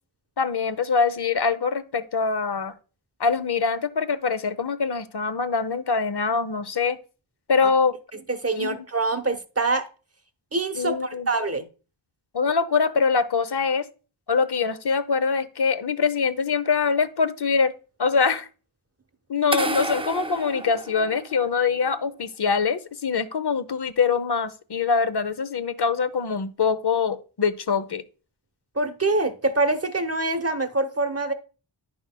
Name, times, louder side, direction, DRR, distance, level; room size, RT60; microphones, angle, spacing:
voice 1, 0.4-2.7 3.2-7.0 7.5-8.0 8.6-8.8 10.7-11.3 12.3-13.8 14.3-17.7 18.0-18.5 19.3-28.0, left 5 dB, 55° left, 0.7 m, -24 dB
voice 2, 8.3-9.9 10.5-11.6 28.8-31.3, right 3 dB, 30° right, 0.9 m, -25 dB
sound 1, 19.5-21.6, right 2 dB, 15° right, 0.3 m, -30 dB
10.0 x 5.8 x 2.2 m
wide cardioid pair, 55°, 48 cm